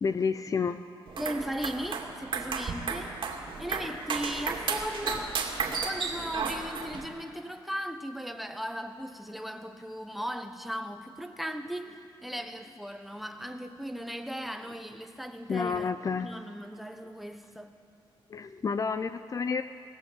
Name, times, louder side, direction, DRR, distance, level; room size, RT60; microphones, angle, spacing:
voice 1, 0.0-0.8 15.5-16.3 18.3-19.6, left 5 dB, 35° left, 0.6 m, -30 dB
sound 1, 1.1-7.1, right 5 dB, 65° right, 2.5 m, -33 dB
voice 2, 1.2-3.2 3.6-5.4 5.7-15.9 16.2-17.7, equal, ahead, 1.2 m, -37 dB
19.0 x 18.5 x 8.1 m
cardioid pair, 120°, 9 cm